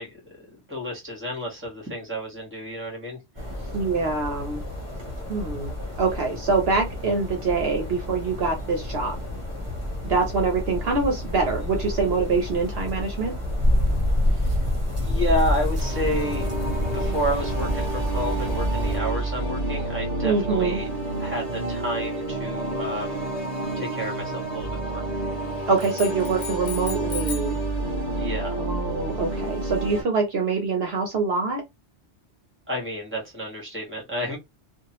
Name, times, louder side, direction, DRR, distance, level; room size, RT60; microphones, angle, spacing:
voice 1, 0.0-3.7 14.3-14.6 15.0-16.5 16.9-20.9 21.2-23.2 23.7-25.1 28.2-28.6 32.7-34.4, equal, 10° right, 1.4 m, -31 dB
sound 1, 3.3-19.0, left 1 dB, 30° right, 0.9 m, -28 dB
voice 2, 3.7-4.6 5.3-5.7 6.0-9.2 10.0-13.4 20.2-20.8 25.7-27.6 28.6-31.6, right 4 dB, 65° right, 0.9 m, -25 dB
sound 2, 15.5-30.0, right 2 dB, 35° left, 1.4 m, -29 dB
sound 3, 25.8-27.6, left 6 dB, 55° left, 0.8 m, -36 dB
2.9 x 2.4 x 2.9 m
omnidirectional pair, 1.2 m